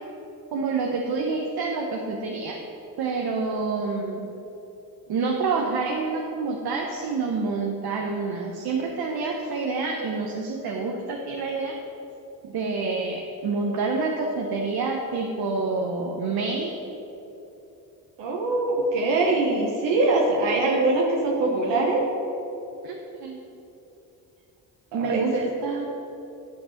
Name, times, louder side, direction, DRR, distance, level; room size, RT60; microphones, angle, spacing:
voice 1, 0.5-2.6 3.0-4.3 5.1-11.8 12.4-16.7 22.8-23.4 24.9-25.9, right 4 dB, 60° right, 1 dB, 1.1 m, -27 dB
voice 2, 18.2-22.0 24.9-25.5, right 2 dB, 85° right, -1 dB, 1.3 m, -23 dB
10.5 x 5.2 x 6.5 m, 2.9 s
supercardioid pair, 55°, 43 cm